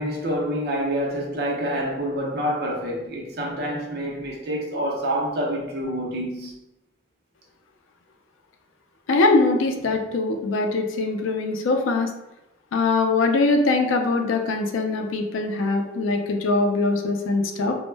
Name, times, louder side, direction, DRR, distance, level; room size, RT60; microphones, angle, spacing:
voice 1, 0.0-6.5, equal, 55° right, 0.5 m, -27 dB
voice 2, 9.1-12.1 12.7-17.7, left 3 dB, 85° left, 0.4 m, -22 dB
2.0 x 2.0 x 3.2 m
head